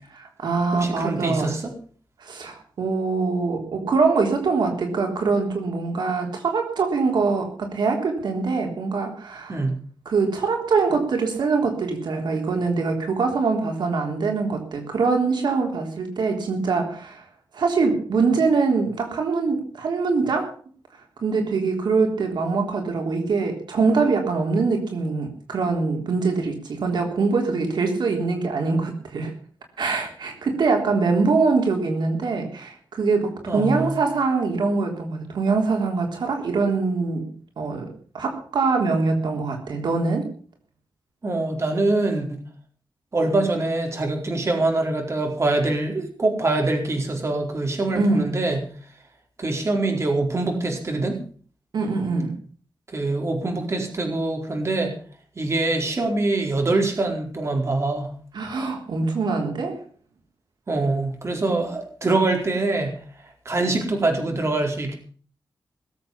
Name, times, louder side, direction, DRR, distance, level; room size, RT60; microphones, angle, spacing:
voice 1, 0.1-1.6 2.2-9.6 10.1-17.3 17.5-20.5 21.2-29.3 29.8-40.3 47.9-48.3 51.7-52.4 58.3-59.8, right 4 dB, 80° right, 3 dB, 3.6 m, -23 dB
voice 2, 0.7-1.7 9.5-9.8 33.5-34.0 41.2-42.4 43.1-48.6 49.4-51.2 52.9-54.9 55.4-58.1 60.7-63.0 63.4-65.0, right 2 dB, 40° right, 3 dB, 4.4 m, -24 dB
20.5 x 8.0 x 7.1 m, 0.43 s
wide cardioid pair, 120°, 8 cm